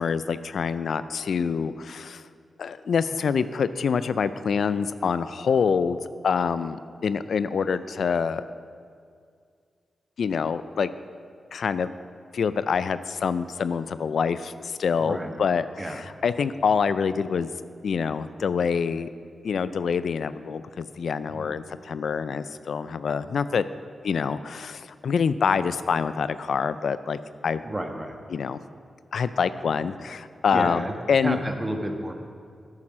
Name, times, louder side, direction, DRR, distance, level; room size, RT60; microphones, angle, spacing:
voice 1, 0.0-2.2 2.6-6.0 6.2-8.4 10.2-10.9 11.5-11.9 12.3-17.5 17.8-19.1 19.4-23.6 24.0-27.6 28.3-28.6 29.1-31.4, left 6 dB, 75° left, 14 dB, 0.3 m, -26 dB
voice 2, 15.0-15.3 15.8-16.0 21.3-21.6 27.6-28.2 30.5-30.9 31.2-32.1, right 1 dB, 25° right, 4 dB, 1.3 m, -31 dB
9.7 x 8.8 x 6.1 m, 2.2 s
cardioid pair, 65°, 0 cm